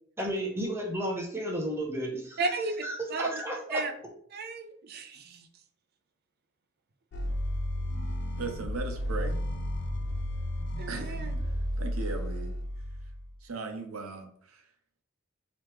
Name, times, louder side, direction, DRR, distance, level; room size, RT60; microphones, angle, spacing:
voice 1, 0.2-2.4 2.8-3.8, equal, 10° right, 0 dB, 0.7 m, -33 dB
voice 2, 2.4-2.8 3.1-3.4 3.7-3.9 4.3-5.5 10.8-11.3, right 3 dB, 50° right, 7 dB, 0.4 m, -33 dB
sound 1, 7.1-13.3, equal, 55° left, 0.4 m, -33 dB
voice 3, 8.4-9.4 10.9-11.2 11.8-12.5 13.4-14.6, right 3 dB, 90° right, 5 dB, 0.7 m, -37 dB
3.3 x 2.9 x 3.0 m, 0.63 s
head